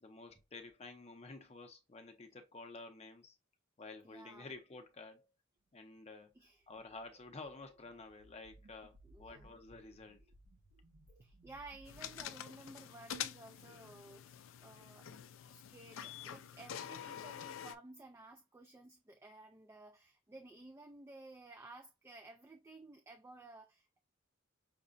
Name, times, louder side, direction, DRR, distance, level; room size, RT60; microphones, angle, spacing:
voice 1, 0.0-3.4 3.8-5.3 5.7-6.3 6.7-10.2, left 3 dB, 30° left, 0.6 m, -51 dB
voice 2, 4.0-4.5 6.3-6.7 9.0-9.5 11.2-15.1 15.5-24.0, right 2 dB, 15° right, 0.3 m, -55 dB
sound 1, 6.5-12.2, right 1 dB, 55° right, 0.6 m, -63 dB
sound 2, 11.9-17.8, left 9 dB, 85° left, 0.4 m, -47 dB
5.8 x 2.1 x 2.5 m
head